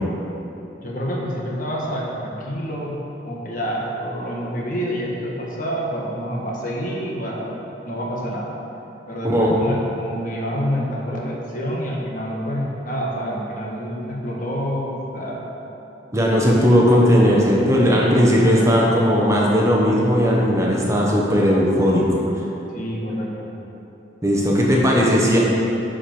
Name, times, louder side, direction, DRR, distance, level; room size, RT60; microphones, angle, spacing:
voice 1, 0.8-3.0 3.2-8.5 9.1-15.5 17.9-19.0 22.7-23.5, equal, 50° left, -3 dB, 1.5 m, -28 dB
voice 2, 9.2-9.6 16.1-22.2 24.2-25.4, equal, 15° right, -4 dB, 1.1 m, -17 dB
9.8 x 5.1 x 6.0 m, 2.9 s
head